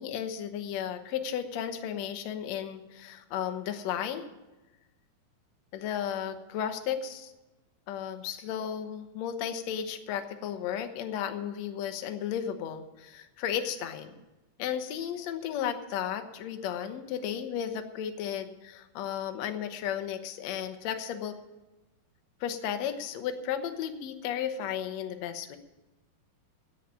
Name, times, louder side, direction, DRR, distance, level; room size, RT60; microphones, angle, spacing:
voice 1, 0.0-4.3 5.7-7.3 7.9-14.1 14.6-21.3 22.4-25.6, left 9 dB, 70° left, 7 dB, 1.7 m, -34 dB
10.5 x 8.1 x 9.8 m, 1.1 s
omnidirectional pair, 4.2 m